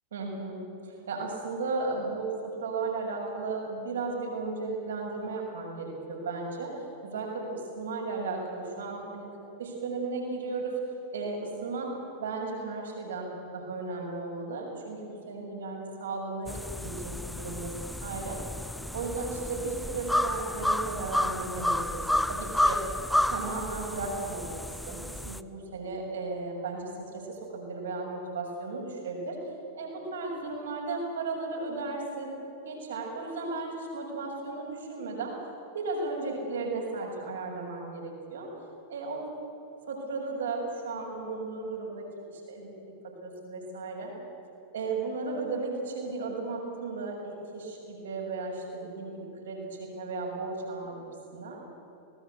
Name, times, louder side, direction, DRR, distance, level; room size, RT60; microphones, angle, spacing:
voice 1, 0.1-6.7 7.0-9.3 9.6-10.8 11.1-11.9 12.2-17.7 18.0-18.4 18.9-22.8 23.3-24.6 24.9-29.4 29.7-35.3 35.7-38.5 38.9-39.3 39.9-44.1 44.7-51.6, right 3 dB, 65° right, 0 dB, 6.9 m, -35 dB
sound 1, 16.5-25.4, left 1 dB, 5° left, 0.7 m, -31 dB
27.0 x 19.5 x 8.4 m, 2.8 s
figure-of-eight pair, 90°, 0 cm